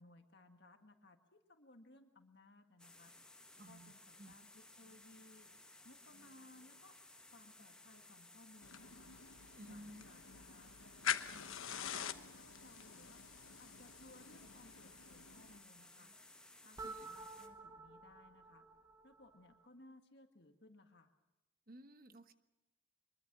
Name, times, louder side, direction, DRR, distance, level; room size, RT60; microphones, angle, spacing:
voice 1, 0.0-3.1 3.6-5.5 5.8-7.0 7.3-9.1 9.6-13.2 13.6-16.1 16.6-18.7 19.0-21.1, left 2 dB, 50° left, 5 dB, 1.8 m, -63 dB
sound 1, 2.8-17.5, left 2 dB, 5° left, 1.5 m, -60 dB
voice 2, 3.6-3.9 4.2-4.3 9.5-10.1 16.8-17.1 21.7-22.3, equal, 45° right, 9 dB, 1.2 m, -55 dB
sound 2, 8.6-15.6, left 8 dB, 75° left, 1.1 m, -45 dB
sound 3, 16.8-19.7, right 3 dB, 15° right, 1.1 m, -52 dB
24.0 x 22.5 x 6.1 m, 1.0 s
head